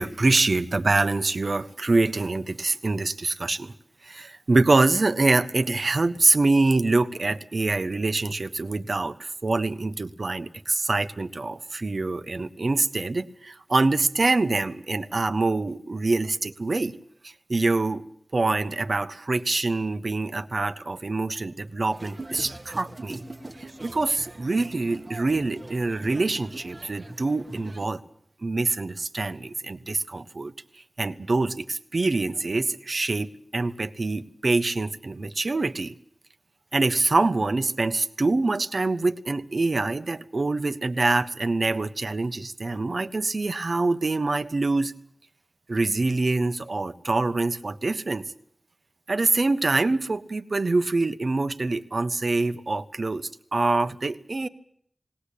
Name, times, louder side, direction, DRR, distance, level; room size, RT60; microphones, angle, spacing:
voice 1, 0.0-3.7 4.0-16.9 17.2-18.0 18.3-23.2 23.6-28.0 28.4-30.5 31.0-35.9 36.7-44.9 45.7-48.2 49.1-54.5, right 3 dB, 60° right, 10 dB, 1.3 m, -25 dB
sound 1, 21.9-27.9, right 2 dB, 40° right, 1.5 m, -42 dB
20.0 x 18.5 x 8.6 m, 0.64 s
wide cardioid pair, 55°, 0 cm